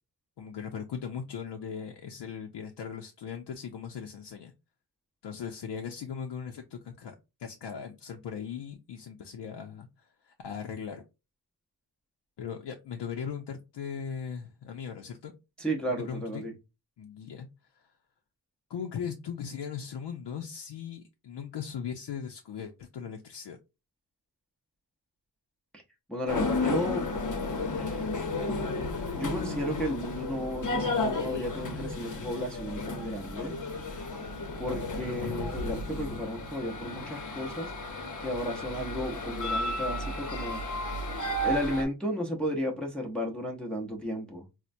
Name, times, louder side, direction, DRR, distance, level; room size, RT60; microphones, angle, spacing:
voice 1, 0.4-4.5 5.2-11.0 12.4-15.3 15.9-16.5 17.0-17.5 17.7-17.9 18.7-23.6, left 7 dB, 85° left, 0.6 m, -39 dB
voice 2, 15.6-16.5 25.7-25.8 26.1-27.1 27.7-28.0 29.1-33.6 34.6-37.7 38.2-40.6 41.4-44.4, equal, ahead, 0.6 m, -33 dB
sound 1, 26.3-41.8, left 2 dB, 50° left, 0.7 m, -33 dB
4.2 x 2.1 x 2.5 m
wide cardioid pair, 180°, 41 cm